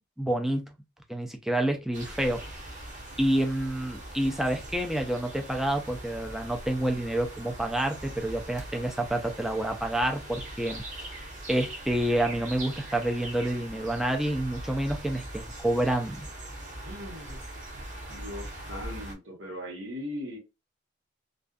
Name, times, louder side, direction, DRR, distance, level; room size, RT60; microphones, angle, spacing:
voice 1, 0.2-0.7 1.1-2.4 3.2-16.3, right 1 dB, ahead, 0.3 m, -28 dB
sound 1, 1.9-19.1, right 1 dB, 40° right, 0.8 m, -41 dB
voice 2, 16.8-17.5 18.1-20.4, left 1 dB, 85° right, 1.1 m, -39 dB
2.5 x 2.3 x 2.2 m
head